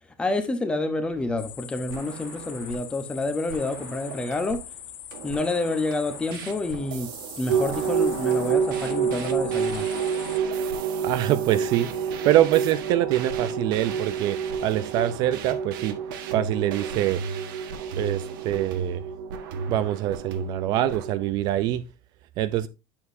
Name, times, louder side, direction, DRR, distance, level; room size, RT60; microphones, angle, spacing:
voice 1, 0.2-4.6 5.2-7.1 7.4-9.9, left 2 dB, 10° left, 0.9 m, -28 dB
sound 1, 1.2-1.5 1.9-3.0 3.5-4.8 5.1-21.1, right 5 dB, 90° right, 1.4 m, -38 dB
sound 2, 1.4-10.4, left 12 dB, 80° left, 1.2 m, -43 dB
sound 3, 7.5-21.3, right 6 dB, 75° right, 1.6 m, -29 dB
voice 2, 11.0-16.0 16.3-17.2 18.0-19.0 19.7-21.8 22.4-22.7, right 13 dB, 40° right, 0.5 m, -24 dB
8.5 x 7.3 x 2.7 m
cardioid pair, 165°, 11 cm